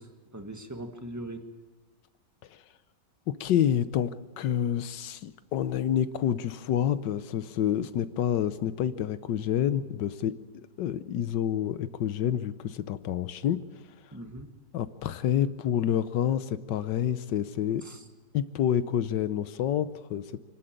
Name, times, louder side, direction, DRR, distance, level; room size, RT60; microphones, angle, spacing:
voice 1, 0.0-1.5 14.1-14.5 17.8-18.0, right 1 dB, 10° right, 5 dB, 1.4 m, -41 dB
voice 2, 3.3-10.3 10.8-13.6 14.7-17.9 18.3-20.4, left 10 dB, 85° left, 14 dB, 1.5 m, -28 dB
26.0 x 12.0 x 8.9 m, 1.2 s
omnidirectional pair, 1.9 m